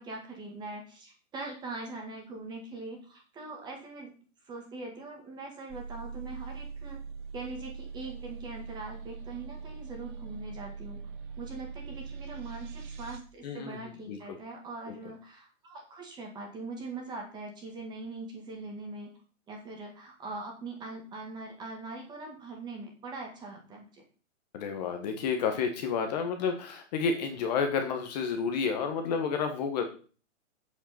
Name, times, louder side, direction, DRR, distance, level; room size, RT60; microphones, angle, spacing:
voice 1, 0.0-4.1 4.4-7.0 7.3-11.0 11.4-19.1 19.5-24.0, right 3 dB, 10° right, 2 dB, 1.9 m, -42 dB
sound 1, 5.7-13.2, right 5 dB, 35° right, 1.4 m, -42 dB
voice 2, 13.4-13.8 14.1-14.2 24.5-29.8, left 5 dB, 30° left, 5 dB, 1.4 m, -30 dB
8.1 x 7.8 x 5.9 m, 0.39 s
hypercardioid pair, 170°, 39 cm